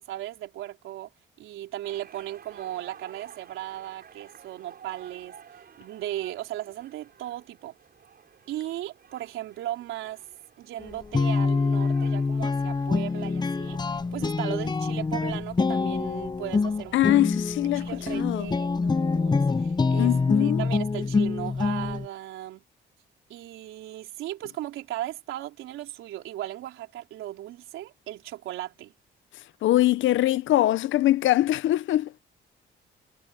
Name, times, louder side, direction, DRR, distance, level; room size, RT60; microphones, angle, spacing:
voice 1, 0.1-1.1 1.4-5.4 5.8-7.8 8.5-10.2 10.6-17.1 17.6-20.1 20.4-22.6 23.3-28.9, right 14 dB, 90° right, 4.1 m, -37 dB
sound 1, 1.8-14.7, right 7 dB, 50° right, 6.8 m, -52 dB
Guitar, 10.8-22.1, left 4 dB, 20° left, 0.7 m, -26 dB
voice 2, 16.9-17.9 18.1-18.5 20.0-20.6 29.6-32.1, left 14 dB, 75° left, 0.7 m, -22 dB
cardioid pair, 90°, 20 cm